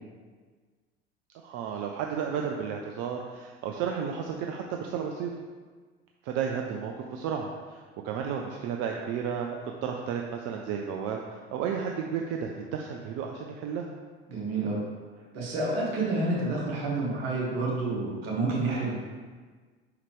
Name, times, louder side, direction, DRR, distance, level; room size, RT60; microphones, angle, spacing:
voice 1, 1.4-5.3 6.2-13.9, right 7 dB, 55° right, 2 dB, 0.6 m, -33 dB
voice 2, 14.3-14.8 15.3-18.9, right 2 dB, 70° right, -4 dB, 1.8 m, -29 dB
5.7 x 4.8 x 3.5 m, 1.5 s
figure-of-eight pair, 60°, 31 cm